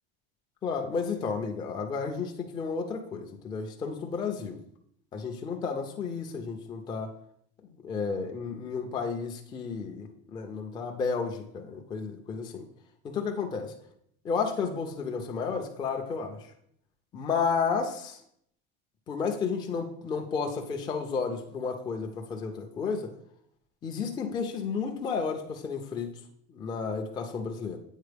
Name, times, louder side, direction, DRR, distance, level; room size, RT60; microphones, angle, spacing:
voice 1, 0.6-4.6 5.1-7.1 7.8-12.6 13.0-13.7 14.2-16.4 17.1-18.2 19.1-23.1 23.8-26.1 26.5-27.8, left 5 dB, 15° left, 2 dB, 0.4 m, -32 dB
8.2 x 4.1 x 3.3 m, 0.69 s
cardioid pair, 160°, 29 cm